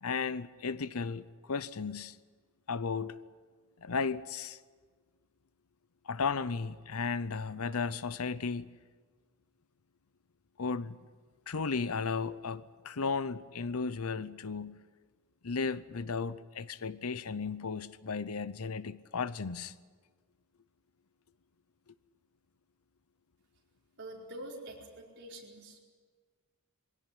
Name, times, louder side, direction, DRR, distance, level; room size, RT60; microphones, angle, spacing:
voice 1, 0.0-2.2 2.7-3.2 3.8-4.6 6.0-8.7 10.6-11.0 11.5-14.8 15.4-19.7, left 5 dB, 75° left, 0.7 m, -35 dB
voice 2, 24.0-25.8, right 1 dB, 50° right, 4.7 m, -46 dB
22.5 x 17.0 x 9.9 m
head